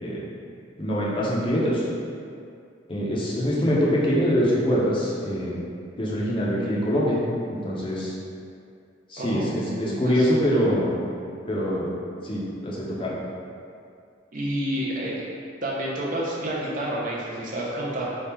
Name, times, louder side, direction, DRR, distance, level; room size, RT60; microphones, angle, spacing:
voice 1, 0.8-1.8 2.9-5.6 6.0-7.2 7.5-8.1 9.1-11.0 11.5-11.9 12.2-13.1, equal, 30° left, -6 dB, 0.7 m, -24 dB
voice 2, 9.2-10.3 14.3-15.3 15.6-18.2, right 1 dB, 45° right, -5 dB, 0.7 m, -29 dB
3.5 x 2.4 x 4.3 m, 2.3 s
head